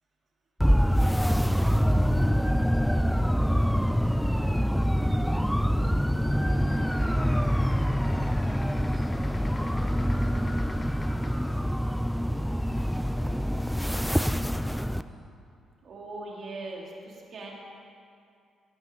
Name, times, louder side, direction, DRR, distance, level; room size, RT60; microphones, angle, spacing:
sound 1, 0.6-15.0, equal, ahead, 0.3 m, -25 dB
voice 1, 1.4-2.3 3.8-5.5 6.1-7.7 8.0-9.0 9.9-15.1, left 2 dB, 65° left, -10 dB, 3.4 m, -52 dB
sound 2, 6.6-11.6, left 2 dB, 20° left, 0.9 m, -45 dB
voice 2, 15.8-17.5, right 2 dB, 55° right, -2 dB, 2.4 m, -40 dB
16.5 x 8.9 x 3.8 m, 2.4 s
cardioid pair, 90°, 0 cm